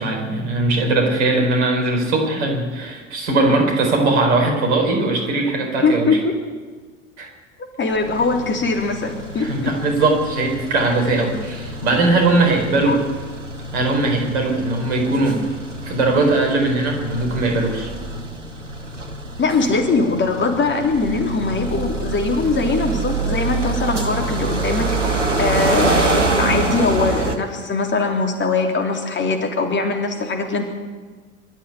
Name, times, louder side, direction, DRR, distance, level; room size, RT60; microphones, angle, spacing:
voice 1, 0.0-6.2 7.2-7.3 9.4-13.0 13.7-15.4 15.8-17.9, right 2 dB, 65° right, 3 dB, 4.6 m, -19 dB
voice 2, 5.8-6.4 7.8-9.7 12.8-13.0 19.4-24.9 25.4-30.7, left 3 dB, 30° left, 3 dB, 3.4 m, -21 dB
sound 1, 7.9-27.4, right 3 dB, 85° right, 1.7 m, -26 dB
24.0 x 13.0 x 8.3 m, 1.4 s
figure-of-eight pair, 65°, 36 cm